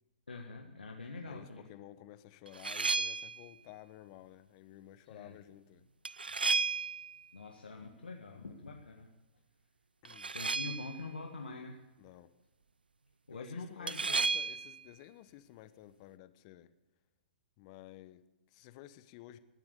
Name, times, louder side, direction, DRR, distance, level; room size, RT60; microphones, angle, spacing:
voice 1, 0.3-1.7 5.1-5.4 7.3-9.1 10.3-11.8 13.3-14.2, left 3 dB, 85° left, 2 dB, 1.8 m, -45 dB
voice 2, 1.2-5.9 10.0-10.3 12.0-12.3 13.3-16.7 17.6-19.4, left 14 dB, 40° left, 13 dB, 1.1 m, -53 dB
sound 1, 2.5-3.5 6.0-7.2 10.0-11.0 13.9-14.8, right 4 dB, 85° right, 0.5 m, -33 dB
18.0 x 11.0 x 6.7 m, 1.1 s
figure-of-eight pair, 115°, 5 cm